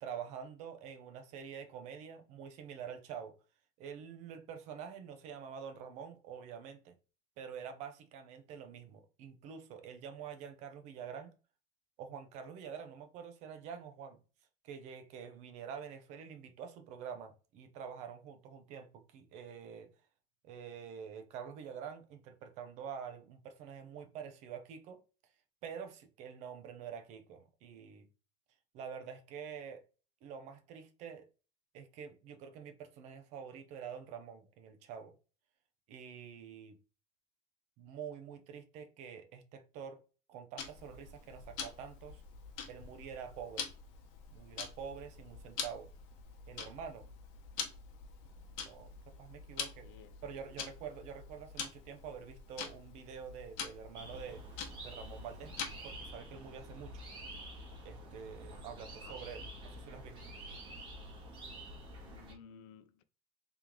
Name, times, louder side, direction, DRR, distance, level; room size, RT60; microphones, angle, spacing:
voice 1, 0.0-3.4 3.8-7.0 7.4-11.3 12.0-14.2 14.6-19.9 20.4-25.0 25.6-28.1 28.7-29.8 30.2-31.3 31.7-35.1 35.9-36.8 37.8-40.0 40.3-42.2 42.7-43.7 44.3-45.9 46.5-47.0 48.6-48.9 49.2-49.9 50.2-54.4 54.8-55.5 55.8-57.0 57.8-60.3, right 7 dB, 50° right, 0.7 m, -47 dB
Tick-tock, 40.6-56.0, left 6 dB, 65° left, 1.0 m, -45 dB
voice 2, 49.8-50.3 58.9-59.2 62.0-63.0, left 7 dB, 85° left, 0.5 m, -56 dB
sound 1, 53.9-62.3, right 1 dB, 30° right, 1.5 m, -48 dB
3.5 x 3.0 x 3.6 m
cardioid pair, 160°, 15 cm